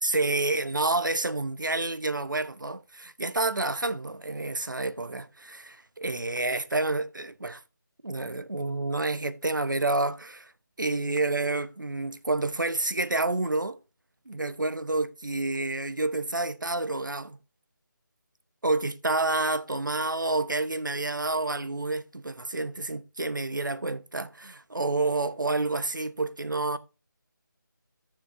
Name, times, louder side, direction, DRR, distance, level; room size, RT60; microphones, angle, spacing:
voice 1, 0.0-7.6 8.0-10.5 10.8-13.8 14.3-17.4 18.6-26.8, right 2 dB, 70° right, 1.1 m, -29 dB
14.0 x 7.2 x 2.7 m
figure-of-eight pair, 160°, 11 cm